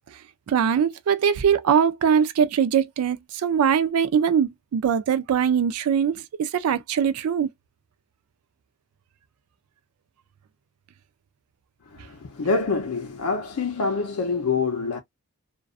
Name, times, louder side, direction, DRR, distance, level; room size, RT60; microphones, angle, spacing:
voice 1, 0.5-7.5, right 7 dB, 80° right, 0.3 m, -22 dB
voice 2, 11.9-15.0, left 4 dB, 85° left, 0.5 m, -26 dB
2.4 x 2.2 x 2.3 m
head